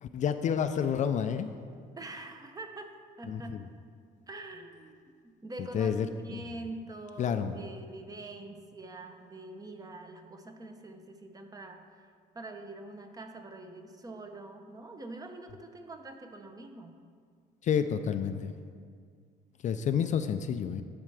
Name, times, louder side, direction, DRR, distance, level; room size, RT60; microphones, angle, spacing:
voice 1, 0.0-1.5 3.3-3.6 5.7-6.4 7.2-7.6 17.6-18.5 19.6-20.8, left 7 dB, 45° left, 9 dB, 0.4 m, -29 dB
voice 2, 1.9-3.6 4.3-5.0 5.4-16.9, right 2 dB, 20° right, 5 dB, 0.8 m, -45 dB
11.5 x 4.5 x 4.8 m, 2.1 s
cardioid pair, 110°, 17 cm